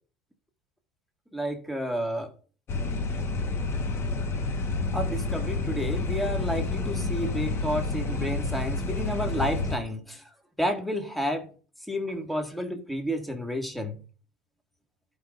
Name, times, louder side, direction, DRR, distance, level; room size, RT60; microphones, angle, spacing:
voice 1, 1.3-2.3 4.9-10.2 10.6-11.5 11.9-14.0, equal, ahead, 1.7 m, -31 dB
sound 1, 2.7-9.8, left 3 dB, 40° left, 1.2 m, -29 dB
14.5 x 5.2 x 2.5 m
hypercardioid pair, 85°, 7 cm